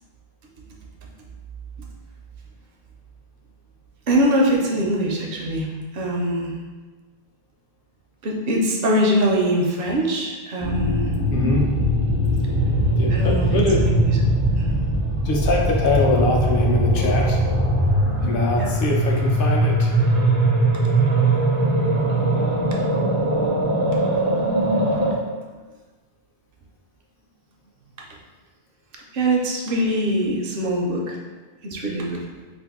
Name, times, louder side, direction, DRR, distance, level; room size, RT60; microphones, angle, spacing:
voice 1, 4.1-5.7 5.9-6.5 8.2-11.1 13.1-13.5 13.8-14.1 14.5-14.7 18.6-18.7 29.1-31.2 31.6-32.2, right 1 dB, 65° right, -1 dB, 0.7 m, -22 dB
sound 1, 10.6-25.1, right 1 dB, 40° right, 0.4 m, -20 dB
voice 2, 11.3-11.7 13.0-13.8 15.2-17.4 18.0-19.9, left 3 dB, 60° left, 0 dB, 0.7 m, -23 dB
2.6 x 2.5 x 3.5 m, 1.3 s
omnidirectional pair, 1.1 m